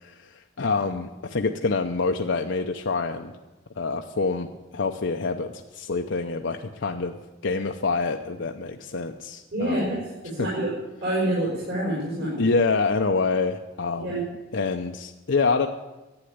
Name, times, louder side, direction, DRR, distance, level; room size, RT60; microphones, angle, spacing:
voice 1, 0.0-3.3 3.8-7.2 7.4-10.0 10.4-10.5 12.4-14.2 14.5-15.7, left 4 dB, 65° left, 4 dB, 0.7 m, -26 dB
voice 2, 9.5-10.7 11.0-12.4 14.0-14.2, right 1 dB, 55° right, -6 dB, 5.3 m, -27 dB
12.0 x 9.0 x 9.6 m, 1.1 s
head